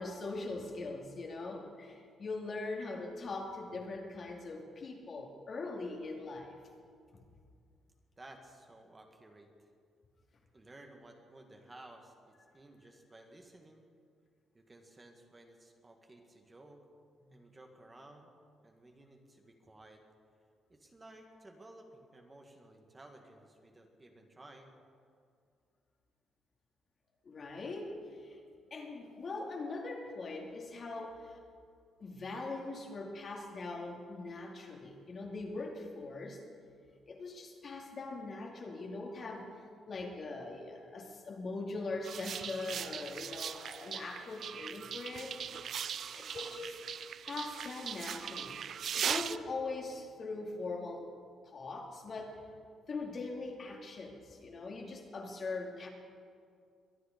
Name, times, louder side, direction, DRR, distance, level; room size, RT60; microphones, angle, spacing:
voice 1, 0.0-6.6 7.1-7.2 17.2-17.3 27.2-28.4 28.7-31.4 32.0-36.4 37.1-39.5 39.9-45.7 46.1-46.8 47.3-51.1 51.5-52.5 52.9-55.9, left 3 dB, 45° left, 1 dB, 2.4 m, -41 dB
voice 2, 3.3-3.6 8.2-9.7 10.5-13.8 14.5-16.8 17.3-18.3 18.6-20.0 20.7-24.7 46.4-46.7, right 1 dB, 25° right, 3 dB, 1.9 m, -56 dB
sound 1, 42.0-49.4, right 8 dB, 60° right, 0.4 m, -39 dB
23.0 x 9.6 x 5.2 m, 2.2 s
cardioid pair, 90°, 0 cm